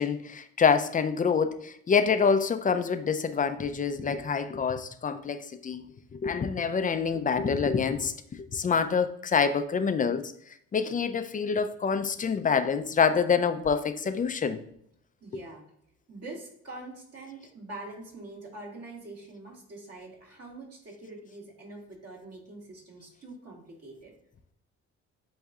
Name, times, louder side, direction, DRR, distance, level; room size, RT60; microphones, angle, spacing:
voice 1, 0.0-5.9 6.2-8.1 8.5-10.2 10.7-14.6, left 6 dB, 30° left, 9 dB, 0.4 m, -26 dB
voice 2, 15.2-15.7 16.1-24.2, right 2 dB, 55° right, -1 dB, 1.9 m, -44 dB
8.0 x 2.7 x 2.3 m, 0.71 s
cardioid pair, 90°, 30 cm